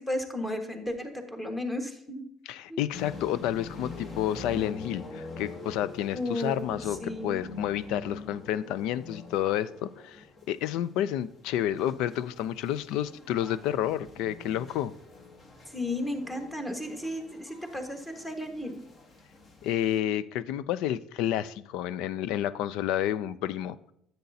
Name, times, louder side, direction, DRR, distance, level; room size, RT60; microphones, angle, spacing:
voice 1, 0.0-2.3 2.7-2.8 6.1-7.4 15.7-18.8, left 1 dB, 10° left, 1.5 m, -34 dB
voice 2, 2.5-14.9 19.6-23.8, left 11 dB, 75° left, 0.4 m, -30 dB
sound 1, 2.9-20.0, left 3 dB, 35° left, 1.3 m, -45 dB
10.5 x 8.0 x 2.8 m
cardioid pair, 115°, 0 cm